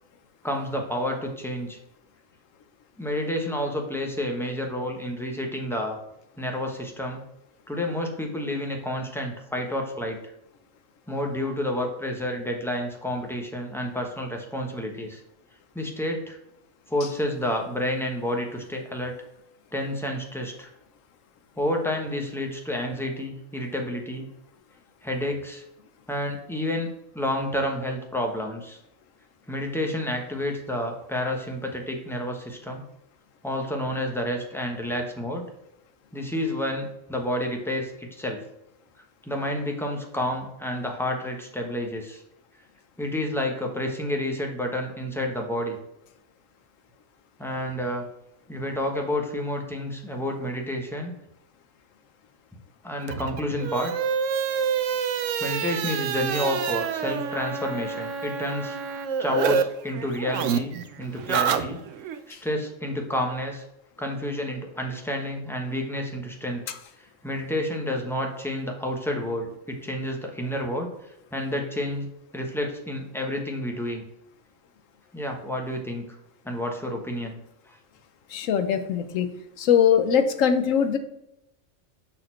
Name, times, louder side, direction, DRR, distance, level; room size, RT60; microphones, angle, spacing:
voice 1, 0.4-1.8 3.0-6.0 6.4-7.2 7.7-10.2 11.1-15.2 15.7-16.4 16.9-19.1 19.7-20.7 21.6-24.3 25.0-25.6 26.1-26.9 27.1-28.8 29.5-32.8 33.4-35.4 36.1-38.4 39.2-42.2 43.0-45.8 47.4-48.0 48.5-51.1 52.8-53.9 55.4-58.8 59.2-60.7 61.0-61.8 62.3-63.6 64.0-66.6 67.0-70.9 71.3-72.1 72.3-74.0 75.1-76.0 76.4-77.4 77.7-77.8, left 1 dB, ahead, 1 dB, 0.9 m, -29 dB
sound 1, 53.0-59.6 59.9-62.2, right 7 dB, 80° right, 0.9 m, -28 dB
voice 2, 78.3-79.3 79.6-81.0, left 8 dB, 85° left, 9 dB, 1.1 m, -21 dB
6.6 x 4.3 x 4.4 m, 0.86 s
omnidirectional pair, 1.3 m